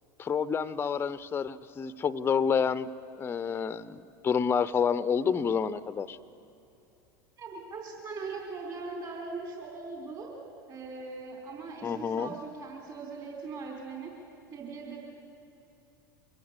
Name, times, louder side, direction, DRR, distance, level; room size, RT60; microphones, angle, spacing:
voice 1, 0.2-2.9 3.2-6.2 11.8-12.3, left 6 dB, 20° left, 15 dB, 0.6 m, -29 dB
voice 2, 7.4-10.3 10.7-14.1 14.5-15.0, right 4 dB, 35° right, 0 dB, 4.0 m, -40 dB
23.5 x 17.0 x 8.2 m, 2.8 s
figure-of-eight pair, 80°, 11 cm